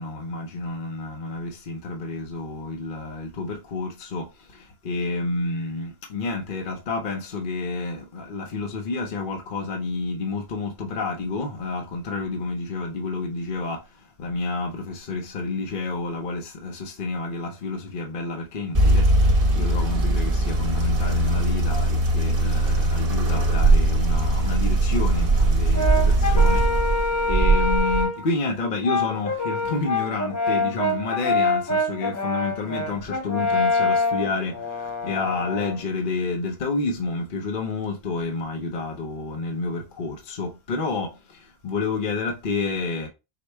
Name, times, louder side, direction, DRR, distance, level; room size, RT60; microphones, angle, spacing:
voice 1, 0.0-43.1, left 3 dB, 55° left, 0.9 m, -30 dB
sound 1, 18.7-28.0, right 2 dB, 60° right, 1.2 m, -20 dB
Brass instrument, 25.7-28.3 28.8-35.8, left 2 dB, 25° left, 0.4 m, -25 dB
4.9 x 2.2 x 4.4 m
omnidirectional pair, 1.0 m